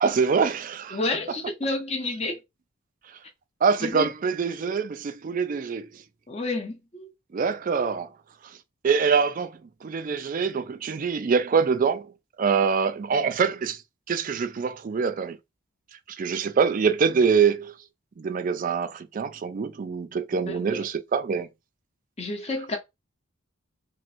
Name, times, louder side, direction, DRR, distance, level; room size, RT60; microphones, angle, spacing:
voice 1, 0.0-1.0 1.3-1.4 3.6-6.0 7.3-8.1 8.4-8.6 8.8-12.1 12.4-13.8 14.1-15.4 16.1-17.7 18.2-21.5, right 5 dB, 40° right, 0.3 m, -25 dB
voice 2, 0.9-2.4 3.8-4.1 6.3-7.1 20.5-20.8 22.2-22.8, left 2 dB, 30° left, 0.7 m, -30 dB
3.1 x 3.0 x 2.4 m
head